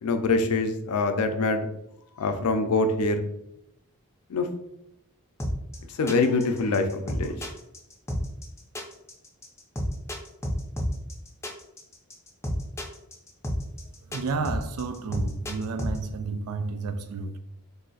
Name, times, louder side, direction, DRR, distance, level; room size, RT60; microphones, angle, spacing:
voice 1, 0.0-1.7 2.2-3.3 4.3-4.5 6.0-7.4, left 3 dB, 85° left, 0.4 m, -24 dB
sound 1, 5.4-16.0, equal, 10° left, 0.5 m, -30 dB
voice 2, 14.1-17.4, right 4 dB, 80° right, 0.4 m, -31 dB
2.6 x 2.3 x 3.9 m
head